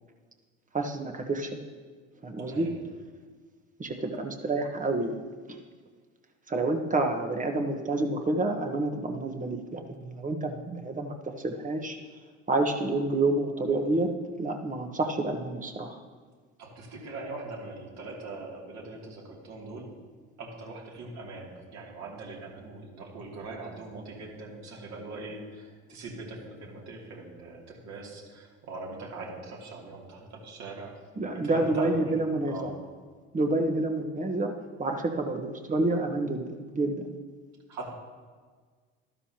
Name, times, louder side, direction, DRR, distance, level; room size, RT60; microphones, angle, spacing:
voice 1, 0.7-1.6 2.2-2.7 3.8-5.2 5.5-5.6 6.5-12.0 12.5-14.1 14.4-16.0 31.2-32.7 33.3-34.5 34.8-37.1, right 2 dB, 25° right, 4 dB, 1.3 m, -28 dB
voice 2, 16.6-19.9 20.4-31.0 31.4-32.2 32.4-32.8 37.7-37.9, right 3 dB, 55° right, -2 dB, 2.9 m, -41 dB
13.0 x 12.5 x 2.9 m, 1.5 s
hypercardioid pair, 65°, 34 cm